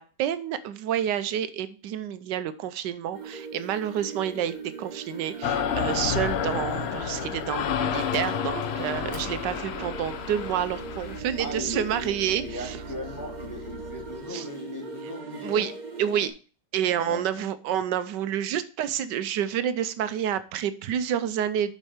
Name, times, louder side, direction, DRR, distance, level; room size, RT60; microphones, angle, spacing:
voice 1, 0.0-12.8 14.3-14.4 15.4-15.7 16.0-16.3 16.7-21.7, right 9 dB, 80° right, 13 dB, 1.3 m, -29 dB
sound 1, 3.1-16.3, right 4 dB, 30° right, 1.3 m, -40 dB
sound 2, 5.4-11.2, left 9 dB, 70° left, 0.6 m, -30 dB
Engine, 8.0-14.3, left 2 dB, 55° left, 2.4 m, -44 dB
voice 2, 11.4-15.7 16.9-17.4, left 1 dB, 10° left, -1 dB, 2.2 m, -38 dB
7.4 x 5.4 x 4.9 m, 0.36 s
omnidirectional pair, 1.9 m